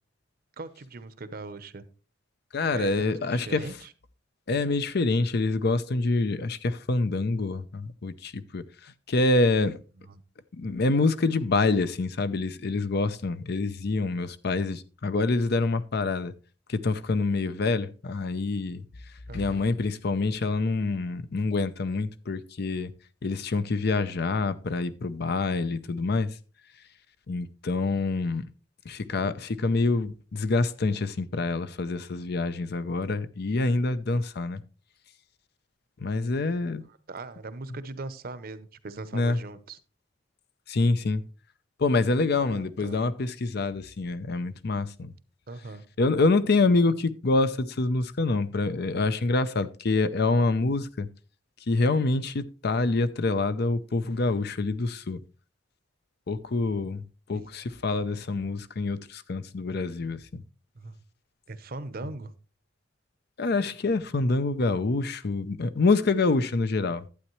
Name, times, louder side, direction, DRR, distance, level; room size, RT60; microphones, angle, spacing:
voice 1, 0.6-1.8 2.7-3.9 10.0-10.2 19.3-19.7 36.8-39.8 42.4-43.0 45.5-45.8 57.3-57.5 60.7-61.0 61.5-62.3, right 3 dB, 50° right, 0.8 m, -40 dB
voice 2, 2.5-3.6 4.5-8.6 9.1-9.8 10.5-16.3 16.7-18.8 19.3-22.9 23.2-26.3 27.3-28.5 28.9-34.6 36.0-36.8 39.1-39.4 40.7-41.2 41.8-45.1 46.0-51.1 51.7-55.2 56.3-57.0 57.3-60.4 63.4-67.1, left 3 dB, 55° left, 0.6 m, -26 dB
11.5 x 8.6 x 3.1 m
head